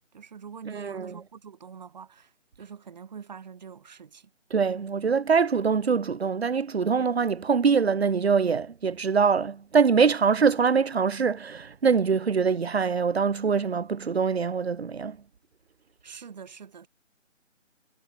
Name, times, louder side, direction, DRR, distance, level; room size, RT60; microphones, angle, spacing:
voice 1, 0.1-2.3 2.6-4.3 16.0-16.9, right 6 dB, 35° right, 3.3 m, -44 dB
voice 2, 0.7-1.2 4.5-15.2, right 5 dB, 55° right, 0.7 m, -24 dB
figure-of-eight pair, 155°, 38 cm